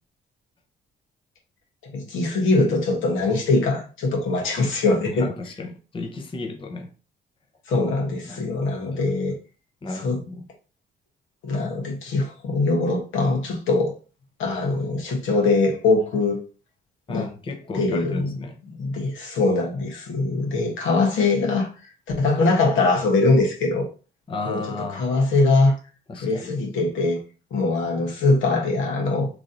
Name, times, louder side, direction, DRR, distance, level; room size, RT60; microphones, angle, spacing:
voice 1, 1.9-5.3 7.7-9.3 10.0-10.2 11.4-13.9 14.4-16.4 17.1-17.3 17.7-18.3 18.7-21.7 22.2-23.8 24.5-24.6 24.9-25.7 26.2-27.2 27.5-29.3, left 3 dB, 80° left, 1.3 m, -22 dB
voice 2, 5.1-6.9 8.3-8.4 8.9-9.0 9.8-10.5 17.1-18.6 24.3-25.1 26.1-26.6, left 3 dB, 25° left, 0.7 m, -33 dB
3.1 x 2.7 x 3.8 m
cardioid pair, 90°, 20 cm